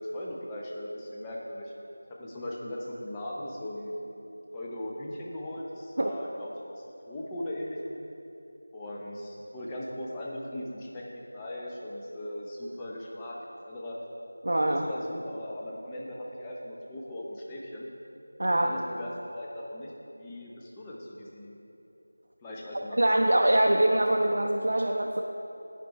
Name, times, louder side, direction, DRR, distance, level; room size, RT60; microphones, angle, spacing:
voice 1, 0.0-1.7 2.2-3.9 4.5-8.0 8.7-13.4 13.7-13.9 14.6-17.9 18.5-19.9 20.2-21.6 22.4-23.2, left 1 dB, 10° left, -4 dB, 0.6 m, -38 dB
voice 2, 14.4-14.9 18.4-18.7 23.0-25.2, right 1 dB, 60° right, 0 dB, 0.5 m, -24 dB
9.2 x 5.2 x 4.6 m, 2.9 s
figure-of-eight pair, 175°, 0 cm